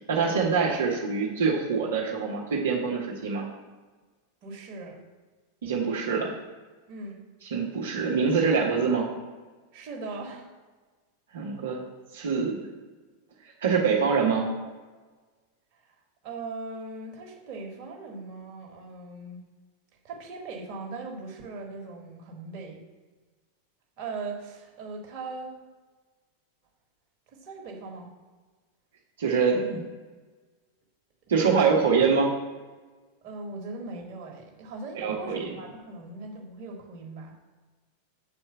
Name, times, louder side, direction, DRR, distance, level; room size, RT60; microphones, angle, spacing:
voice 1, 0.1-3.5 5.6-6.3 7.5-9.1 11.3-11.8 12.1-12.6 13.6-14.5 29.2-29.8 31.3-32.3 35.0-35.5, right 5 dB, 60° right, -5 dB, 1.2 m, -24 dB
voice 2, 4.4-5.0 6.9-7.2 9.7-10.5 15.7-15.9 16.2-19.4 20.0-22.8 24.0-25.5 27.3-28.1 29.5-29.8 31.6-31.8 33.2-37.3, right 3 dB, 40° right, 0 dB, 1.8 m, -39 dB
7.0 x 4.4 x 6.8 m, 1.3 s
figure-of-eight pair, 90°, 0 cm